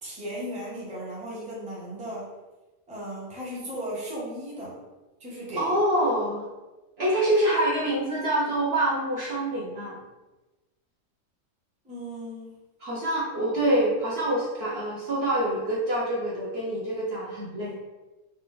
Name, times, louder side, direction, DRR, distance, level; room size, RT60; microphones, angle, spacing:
voice 1, 0.0-2.3 2.9-4.8 5.2-5.7 11.8-12.6, right 1 dB, 5° right, -6 dB, 0.7 m, -36 dB
voice 2, 5.6-6.5 7.0-10.0 12.8-17.7, right 1 dB, 55° right, -6 dB, 0.8 m, -26 dB
3.3 x 2.4 x 3.7 m, 1.1 s
omnidirectional pair, 1.6 m